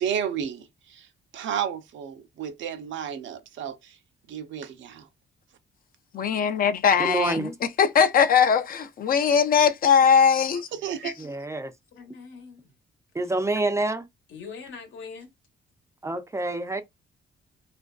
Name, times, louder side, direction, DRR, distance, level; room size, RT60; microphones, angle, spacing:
voice 1, 0.0-4.0 4.3-5.1 10.7-11.1, right 8 dB, 70° right, 0.5 m, -32 dB
voice 2, 6.1-10.7 11.0-11.1, left 7 dB, 45° left, 0.4 m, -20 dB
voice 3, 7.0-7.5 11.2-11.7 13.1-14.0 16.0-16.8, right 2 dB, 15° right, 0.4 m, -27 dB
voice 4, 11.9-12.7 13.2-13.3 13.7-13.8 14.3-15.3, left 5 dB, 75° left, 0.9 m, -43 dB
2.4 x 2.2 x 2.3 m
cardioid pair, 90°, 20 cm